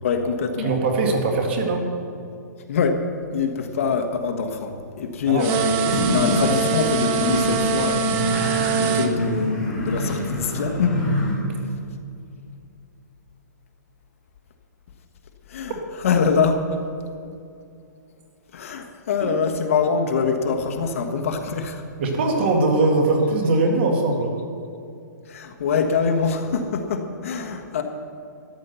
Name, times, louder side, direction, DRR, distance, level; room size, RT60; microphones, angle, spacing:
voice 1, 0.0-0.7 2.7-3.0 3.3-8.1 8.8-11.0 15.5-15.7 16.0-16.8 18.5-21.8 25.3-27.8, left 5 dB, 45° left, 5 dB, 1.3 m, -24 dB
voice 2, 0.6-1.9 5.3-5.5 5.9-6.1 19.2-19.3 22.0-24.3, right 2 dB, 35° right, 2 dB, 2.0 m, -21 dB
sound 1, 5.4-9.1, right 5 dB, 20° right, 0.7 m, -23 dB
sound 2, 5.8-11.3, left 1 dB, 5° left, 3.1 m, -26 dB
13.5 x 10.0 x 6.9 m, 2.5 s
hypercardioid pair, 170°, 10 cm